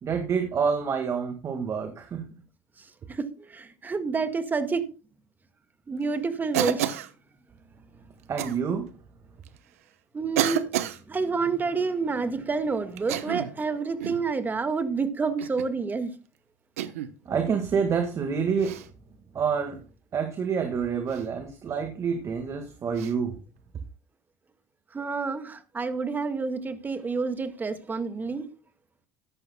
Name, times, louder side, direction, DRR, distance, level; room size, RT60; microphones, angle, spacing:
voice 1, 0.0-2.3 8.3-8.9 17.3-18.8 19.3-19.8 20.1-23.3, right 6 dB, 40° right, 1.8 m, -27 dB
voice 2, 3.1-4.8 5.9-7.0 10.1-10.7 11.1-16.1 24.9-28.5, right 4 dB, 25° right, 1.7 m, -28 dB
Cough, 6.5-7.1 8.4-8.6 9.5-9.6 10.4-11.0 13.0-13.6 14.0-14.3 15.4-15.7 16.8-17.1 18.6-18.9 21.1-21.3 23.0-23.1, right 12 dB, 90° right, 0.9 m, -29 dB
14.0 x 10.5 x 2.2 m
supercardioid pair, 85°, 8 cm